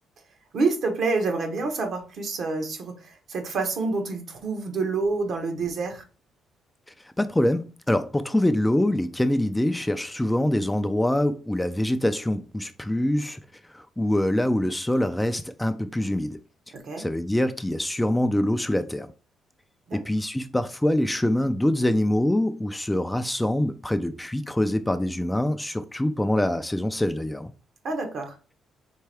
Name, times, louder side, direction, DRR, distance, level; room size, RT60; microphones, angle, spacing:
voice 1, 0.5-6.0 16.7-17.0 19.9-20.0 27.8-28.3, right 3 dB, 65° right, 1.2 m, -28 dB
voice 2, 7.2-13.4 13.7-16.4 17.0-19.1 19.9-27.5, left 1 dB, 10° left, 0.4 m, -24 dB
4.5 x 3.3 x 3.4 m
cardioid pair, 90°, 0 cm